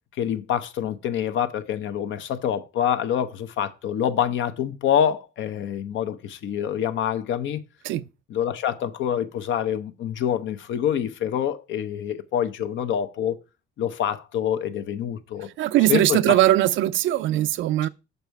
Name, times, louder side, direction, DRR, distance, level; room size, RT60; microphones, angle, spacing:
voice 1, 0.2-7.6 8.3-13.4 13.8-15.5 15.9-16.3, left 9 dB, 80° left, 0.8 m, -26 dB
voice 2, 15.6-17.9, right 14 dB, 85° right, 0.4 m, -20 dB
6.8 x 5.5 x 4.6 m
cardioid pair, 100°, 19 cm